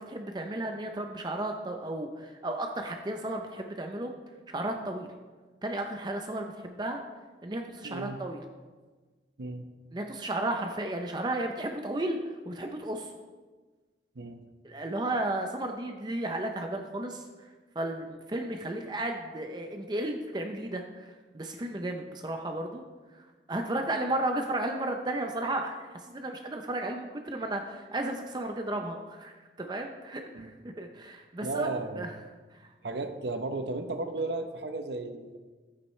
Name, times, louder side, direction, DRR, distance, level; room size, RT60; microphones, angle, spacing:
voice 1, 0.0-4.2 4.5-5.1 5.6-7.0 7.4-8.4 9.9-12.2 12.5-13.1 14.6-17.2 17.8-21.1 21.3-22.8 23.5-25.8 26.1-29.3 29.6-30.5 30.8-31.7 32.0-32.1, right 1 dB, 25° right, 4 dB, 0.6 m, -33 dB
voice 2, 7.8-8.2 9.4-9.7 14.1-14.4 30.3-30.5 31.4-32.1 32.8-35.4, right 2 dB, 75° right, 7 dB, 0.8 m, -34 dB
12.5 x 8.6 x 3.2 m, 1.3 s
head